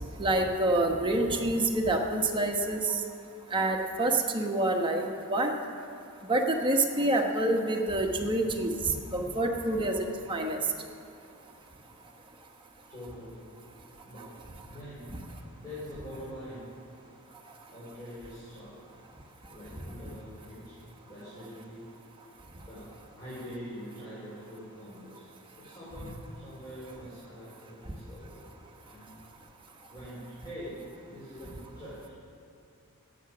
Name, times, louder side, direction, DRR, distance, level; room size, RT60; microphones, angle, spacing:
voice 1, 0.2-3.0 3.5-5.5 6.3-10.6, right 2 dB, 20° right, 2 dB, 1.1 m, -27 dB
voice 2, 12.9-13.5 14.0-14.4 14.6-16.7 17.7-18.8 19.5-22.0 22.6-28.5 28.8-29.2 29.9-32.1, equal, 20° left, -10 dB, 3.9 m, -44 dB
17.5 x 7.7 x 6.1 m, 2.7 s
head